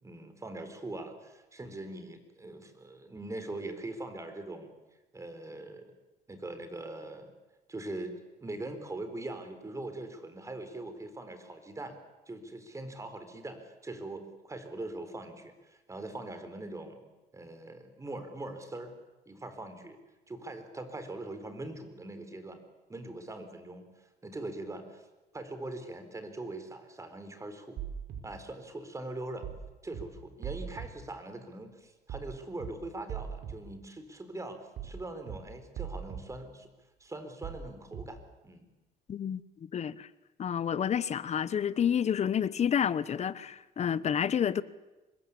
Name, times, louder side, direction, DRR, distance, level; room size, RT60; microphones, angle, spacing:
voice 1, 0.0-4.7 5.1-5.9 6.3-7.3 7.7-8.1 8.4-12.0 12.3-17.0 17.3-19.0 19.3-20.0 20.3-22.6 22.9-25.0 25.3-27.8 28.2-29.5 29.8-36.7 37.0-38.2 38.4-38.7, right 2 dB, 20° right, 4.2 m, -42 dB
sound 1, 27.8-28.2 29.4-29.6 29.9-30.0 30.4-30.9 32.1-32.3 32.6-32.7 33.1-33.5 34.8-35.0 35.3-35.4 35.8-36.2 37.4-37.6 37.9-38.0, right 8 dB, 70° right, 5.4 m, -38 dB
voice 2, 39.1-40.1 40.4-44.6, left 8 dB, 40° left, 1.1 m, -29 dB
25.0 x 21.0 x 8.7 m
cardioid pair, 110°, 17 cm